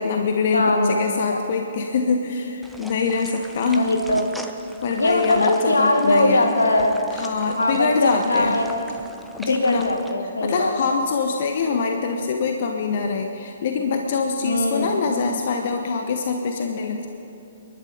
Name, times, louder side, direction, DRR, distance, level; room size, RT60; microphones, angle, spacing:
voice 1, 0.0-3.9 4.8-6.5 7.1-8.6 9.4-9.9 10.2-17.1, left 5 dB, 50° left, 4 dB, 1.0 m, -24 dB
voice 2, 0.5-0.9 1.3-1.4 3.8-4.3 5.0-7.0 7.6-8.7 9.5-10.7 14.4-14.9, left 1 dB, 80° left, 4 dB, 1.7 m, -20 dB
sound 1, 2.6-10.1, equal, ahead, 0.9 m, -41 dB
30.0 x 11.5 x 3.9 m, 2.8 s
figure-of-eight pair, 120°, 0 cm